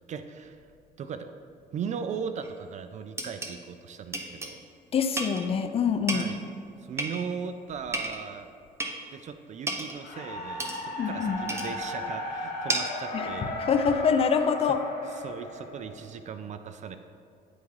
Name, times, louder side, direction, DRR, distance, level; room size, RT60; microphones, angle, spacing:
voice 1, 0.1-0.6 1.0-1.3 1.7-4.6 6.1-6.4 6.8-8.5 9.1-13.5 15.1-17.0, right 6 dB, 45° right, 9 dB, 0.4 m, -38 dB
sound 1, 2.4-2.5 3.2-3.6 4.1-4.6 5.2-5.5 6.1-6.4 7.0-7.4 7.9-8.2 8.8-9.0 9.7-10.0 10.6-10.8 11.5-11.8 12.7-13.1, right 2 dB, 15° right, 0.7 m, -32 dB
voice 2, 4.9-6.3 11.0-11.4 13.1-13.3 13.6-14.8, left 6 dB, 35° left, 9 dB, 0.5 m, -25 dB
sound 2, 10.0-16.1, left 2 dB, 70° left, 1.6 m, -35 dB
9.9 x 3.6 x 4.7 m, 2.4 s
cardioid pair, 110°, 17 cm